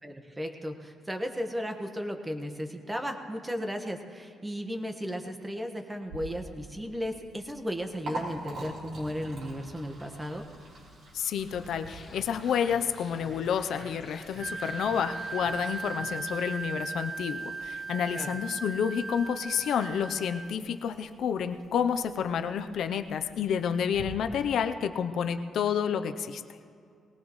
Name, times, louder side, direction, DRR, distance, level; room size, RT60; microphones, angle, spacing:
voice 1, 0.0-10.5 18.1-18.3, equal, 15° right, 4 dB, 1.5 m, -35 dB
Liquid, 6.0-24.0, right 2 dB, 65° right, 4.4 m, -47 dB
voice 2, 11.1-26.4, left 7 dB, 70° left, 8 dB, 0.7 m, -29 dB
sound 1, 11.9-16.2, left 4 dB, 45° left, 1.2 m, -51 dB
Wind instrument woodwind instrument, 14.4-20.5, right 3 dB, 35° right, 0.6 m, -38 dB
20.5 x 18.5 x 3.2 m, 2.4 s
cardioid pair, 90°, 0 cm